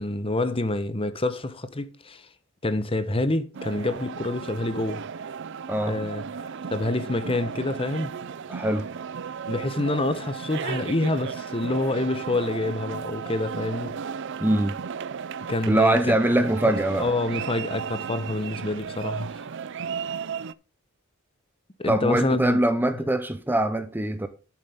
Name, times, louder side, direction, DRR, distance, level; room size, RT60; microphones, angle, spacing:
voice 1, 0.0-2.3 2.6-5.0 5.9-6.2 6.7-8.1 9.5-14.0 15.5-16.5 17.0-19.3 21.8-22.6, left 2 dB, 25° left, 1.0 m, -27 dB
sound 1, 3.5-20.5, right 6 dB, 55° right, 0.5 m, -35 dB
voice 2, 5.7-6.0 8.5-8.9 14.4-14.8 15.7-17.1 21.9-24.3, right 1 dB, 10° right, 0.7 m, -23 dB
12.0 x 7.4 x 3.6 m
head